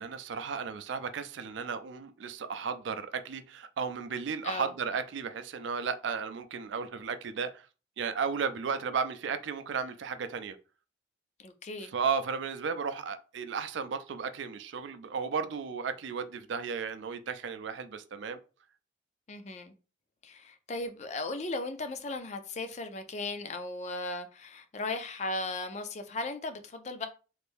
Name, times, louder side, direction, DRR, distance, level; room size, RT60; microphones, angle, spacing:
voice 1, 0.0-7.7 8.0-10.6 11.9-18.4, right 6 dB, 75° right, 0.4 m, -34 dB
voice 2, 11.4-11.9 19.3-19.7 20.2-27.1, left 2 dB, 35° left, 0.4 m, -37 dB
3.2 x 2.6 x 3.5 m
head